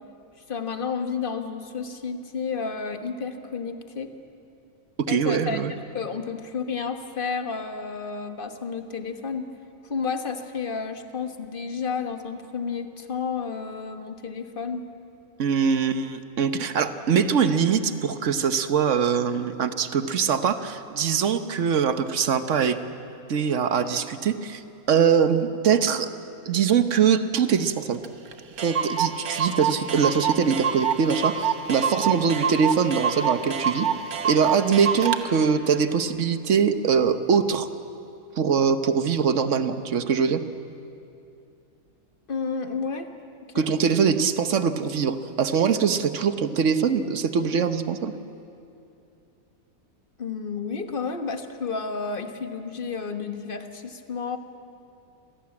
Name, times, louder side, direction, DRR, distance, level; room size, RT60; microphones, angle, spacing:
voice 1, 0.5-4.1 5.1-5.6 5.9-9.5 9.8-14.9 42.3-43.1 43.5-43.7 50.2-54.4, left 5 dB, 40° left, 7 dB, 1.4 m, -31 dB
voice 2, 5.1-5.7 15.4-22.8 23.3-24.6 24.9-26.1 26.4-28.0 28.6-33.9 34.2-37.7 38.4-40.4 43.5-48.1, right 6 dB, 60° right, 10 dB, 1.3 m, -23 dB
Clock, 28.0-28.1 28.3-28.4 28.6-35.2, right 7 dB, 80° right, 1.6 m, -26 dB
26.0 x 18.0 x 8.7 m, 2.7 s
omnidirectional pair, 1.5 m